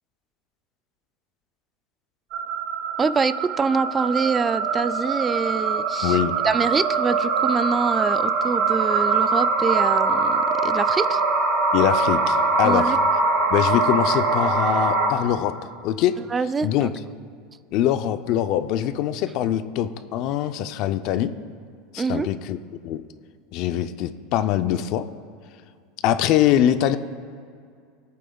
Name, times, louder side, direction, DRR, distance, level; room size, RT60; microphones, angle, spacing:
sound 1, 2.3-15.1, right 3 dB, 60° right, 1.7 m, -22 dB
voice 1, 3.0-6.2 6.4-11.2 12.6-13.0 16.3-16.9 22.0-22.3, right 4 dB, 20° right, 14 dB, 0.3 m, -25 dB
voice 2, 6.0-6.4 11.7-13.0 13.5-16.2 16.6-16.9 17.7-21.3 21.9-22.6 22.8-23.0 23.5-25.1 26.0-27.0, left 11 dB, 55° left, 10 dB, 0.5 m, -23 dB
22.5 x 8.4 x 2.3 m, 2.2 s
supercardioid pair, 120°, 0 cm